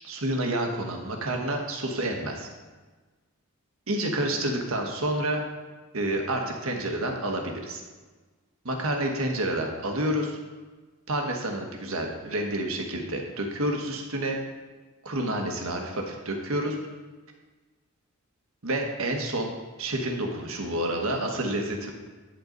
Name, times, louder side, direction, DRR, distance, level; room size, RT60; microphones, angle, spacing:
voice 1, 0.0-2.5 3.9-5.4 5.9-7.8 8.6-10.4 11.1-14.4 15.0-16.8 18.6-19.5 19.8-21.9, right 1 dB, 80° right, 2 dB, 1.4 m, -29 dB
9.1 x 7.9 x 4.0 m, 1.3 s
head